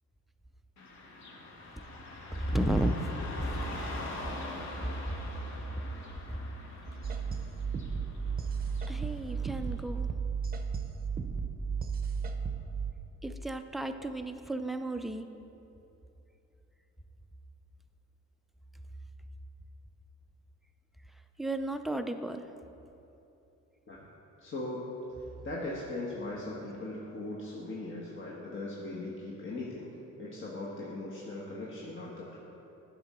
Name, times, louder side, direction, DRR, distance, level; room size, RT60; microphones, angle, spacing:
Car passing by / Traffic noise roadway noise, 0.8-9.8, left 2 dB, 65° left, 1.3 m, -44 dB
voice 1, 2.3-3.8 5.1-5.2 8.9-10.1 13.2-15.3 21.4-22.5, right 1 dB, ahead, 7 dB, 0.4 m, -33 dB
sound 1, 7.0-12.9, right 5 dB, 30° right, 0.7 m, -34 dB
voice 2, 24.4-24.9 25.4-29.9 30.2-32.4, left 2 dB, 40° left, -5 dB, 1.2 m, -39 dB
10.5 x 6.3 x 4.3 m, 3.0 s
cardioid pair, 90°, 30 cm